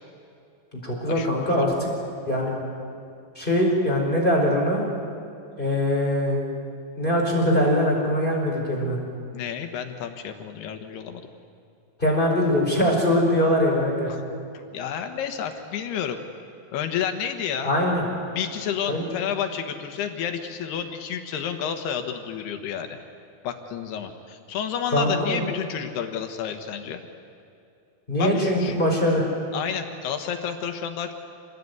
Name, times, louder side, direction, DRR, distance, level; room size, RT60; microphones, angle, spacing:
voice 1, 0.8-1.9 2.2-2.6 3.3-4.9 5.6-6.4 7.0-9.0 12.0-14.2 17.6-18.0 18.9-19.0 24.9-25.4 28.1-29.3, equal, 10° left, -1 dB, 4.8 m, -22 dB
voice 2, 9.3-11.2 14.1-14.2 14.5-16.2 16.7-17.7 18.3-22.9 23.4-27.0 28.2-28.8 29.5-31.1, left 8 dB, 80° left, 6 dB, 3.3 m, -30 dB
27.5 x 20.5 x 9.6 m, 2.6 s
omnidirectional pair, 4.7 m